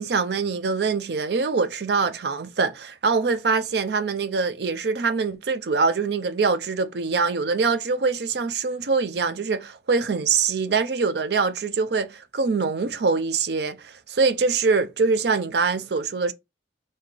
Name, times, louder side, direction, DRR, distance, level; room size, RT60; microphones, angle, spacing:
voice 1, 0.0-16.3, right 4 dB, 65° right, 0.5 m, -24 dB
3.7 x 2.8 x 4.7 m
head